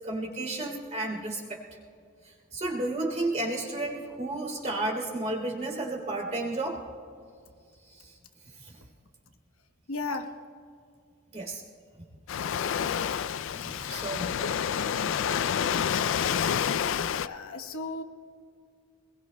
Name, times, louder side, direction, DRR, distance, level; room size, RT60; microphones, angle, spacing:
voice 1, 0.0-1.6 2.5-6.8 8.0-8.1 8.6-8.8 11.3-11.6 13.0-14.3, right 2 dB, 35° right, -1 dB, 3.0 m, -32 dB
voice 2, 9.9-10.3 17.1-18.0, left 3 dB, 90° left, 5 dB, 1.1 m, -34 dB
Waves surf, 12.3-17.3, left 8 dB, 65° left, 0.4 m, -28 dB
25.0 x 21.0 x 2.2 m, 2.3 s
head